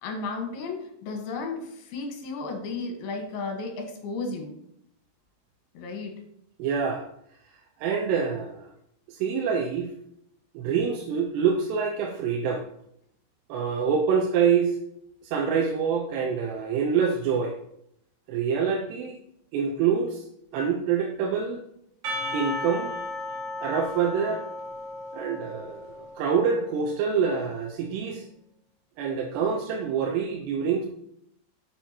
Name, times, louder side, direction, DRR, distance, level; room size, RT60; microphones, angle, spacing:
voice 1, 0.0-4.5 5.7-6.2, left 3 dB, 70° left, 3 dB, 3.1 m, -34 dB
voice 2, 6.6-7.1 7.8-8.7 9.1-9.9 10.5-12.6 13.5-14.8 15.2-17.5 18.3-19.2 19.5-20.2 20.5-21.6 22.3-22.9 23.6-24.4 25.1-28.2 29.0-30.9, right 6 dB, 80° right, 0 dB, 2.9 m, -26 dB
Percussion / Church bell, 22.0-26.6, left 1 dB, 60° right, 3.1 m, -35 dB
8.9 x 7.4 x 2.9 m, 0.73 s
omnidirectional pair, 4.9 m